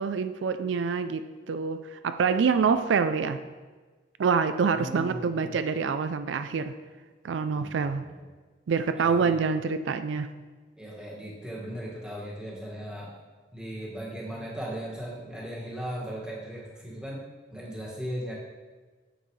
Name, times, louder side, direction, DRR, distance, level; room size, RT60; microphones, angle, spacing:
voice 1, 0.0-3.4 4.2-6.7 7.2-8.1 8.7-10.3, right 5 dB, 75° right, 10 dB, 0.4 m, -26 dB
voice 2, 4.7-5.6 7.5-8.2 9.0-9.4 10.8-13.2 13.5-17.2 17.5-18.3, equal, 5° right, -5 dB, 1.8 m, -37 dB
9.1 x 8.0 x 3.2 m, 1.4 s
head